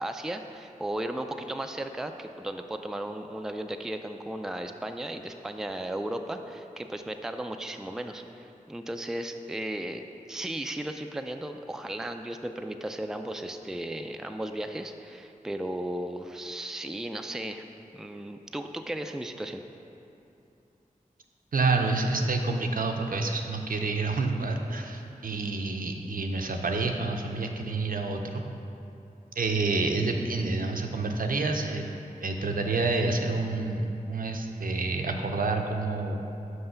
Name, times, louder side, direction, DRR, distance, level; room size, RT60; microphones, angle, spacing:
voice 1, 0.0-17.6 17.9-19.6, right 1 dB, 5° right, 6 dB, 0.3 m, -35 dB
voice 2, 21.5-28.4 29.4-31.9 32.2-36.3, right 3 dB, 75° right, 3 dB, 0.6 m, -28 dB
5.8 x 5.5 x 5.7 m, 2.8 s
wide cardioid pair, 65°, 15 cm